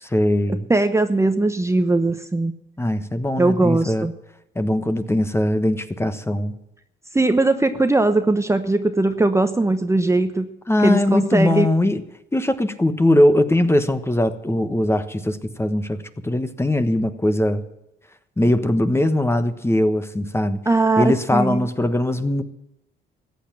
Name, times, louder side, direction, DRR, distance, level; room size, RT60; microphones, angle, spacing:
voice 1, 0.1-0.7 2.8-4.1 4.5-6.5 10.7-12.0 12.3-17.6 18.4-20.6 21.0-22.4, left 1 dB, 10° left, 10 dB, 1.2 m, -20 dB
voice 2, 0.7-2.5 3.4-4.1 7.1-10.5 10.8-11.7 20.7-21.7, right 2 dB, 15° right, 8 dB, 0.9 m, -19 dB
15.0 x 8.3 x 8.9 m, 0.87 s
cardioid pair, 90°, 20 cm